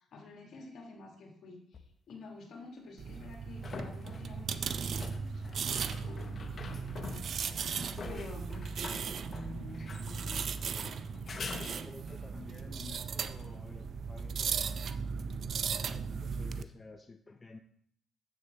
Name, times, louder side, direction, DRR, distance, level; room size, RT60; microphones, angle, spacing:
voice 1, 0.0-7.7 8.1-10.6, left 2 dB, 65° left, 1 dB, 2.0 m, -49 dB
sound 1, 1.7-1.8 3.1-12.3 15.7-15.8, left 4 dB, 45° left, 0.9 m, -46 dB
sound 2, 3.0-16.6, right 6 dB, 55° right, 0.4 m, -37 dB
voice 2, 8.0-8.3 11.6-17.6, left 3 dB, 25° left, 5 dB, 0.5 m, -51 dB
7.9 x 7.0 x 3.2 m, 0.65 s
cardioid pair, 90°, 0 cm